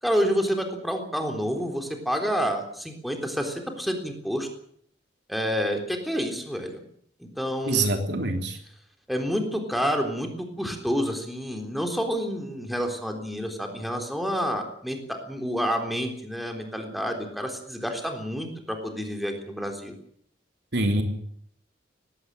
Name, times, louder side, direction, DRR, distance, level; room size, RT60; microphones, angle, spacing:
voice 1, 0.0-4.5 5.3-6.8 7.2-7.9 9.1-19.9, equal, ahead, 4 dB, 3.7 m, -29 dB
voice 2, 7.7-8.6 20.7-21.0, right 2 dB, 60° right, 4 dB, 3.5 m, -24 dB
19.0 x 17.0 x 8.9 m, 0.65 s
head